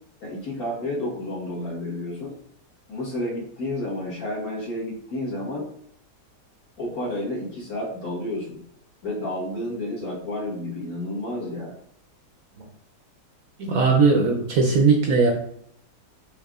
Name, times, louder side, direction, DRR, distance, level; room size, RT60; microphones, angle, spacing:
voice 1, 0.2-2.3 2.9-5.7 6.8-8.6 9.0-11.7, left 1 dB, 60° left, -5 dB, 1.9 m, -30 dB
voice 2, 13.6-15.3, right 4 dB, 65° right, 1 dB, 0.9 m, -19 dB
5.2 x 3.7 x 2.4 m, 0.69 s
omnidirectional pair, 1.8 m